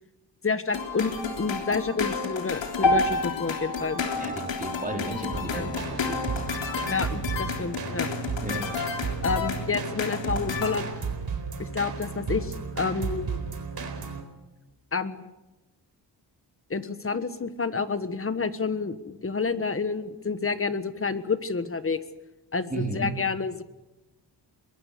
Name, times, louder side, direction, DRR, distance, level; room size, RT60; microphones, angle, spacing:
voice 1, 0.4-4.0 5.5-5.7 6.9-8.1 9.2-10.9 11.6-13.4 14.9-15.3 16.7-22.0 22.5-23.6, left 4 dB, 30° left, 12 dB, 1.4 m, -29 dB
sound 1, 0.7-10.8, left 6 dB, 90° left, 3.6 m, -32 dB
sound 2, 2.8-7.0, left 1 dB, 70° left, 4.6 m, -30 dB
voice 2, 4.1-6.7 8.4-8.7 22.7-23.1, right 2 dB, 20° right, 2 dB, 4.2 m, -34 dB
sound 3, 5.3-14.2, right 5 dB, 55° right, 4.3 m, -33 dB
22.5 x 21.5 x 6.8 m, 1.1 s
wide cardioid pair, 100°, 43 cm